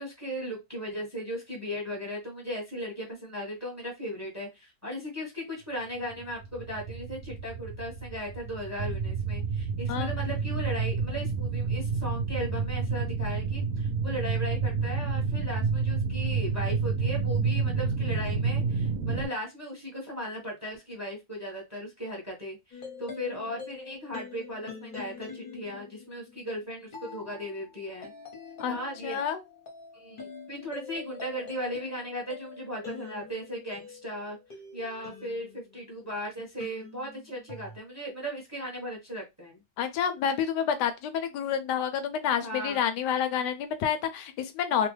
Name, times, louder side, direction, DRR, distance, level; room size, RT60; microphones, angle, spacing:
voice 1, 0.0-28.1 28.7-29.2 29.9-34.4 34.7-39.6 42.4-42.8, equal, 10° right, 0.8 m, -37 dB
sound 1, 6.1-19.3, right 5 dB, 65° right, 0.8 m, -29 dB
sound 2, 22.7-36.1 36.6-37.8, left 5 dB, 40° left, 0.7 m, -45 dB
voice 2, 29.0-29.4 39.8-44.9, left 8 dB, 75° left, 1.1 m, -28 dB
3.0 x 2.2 x 3.1 m
omnidirectional pair, 2.0 m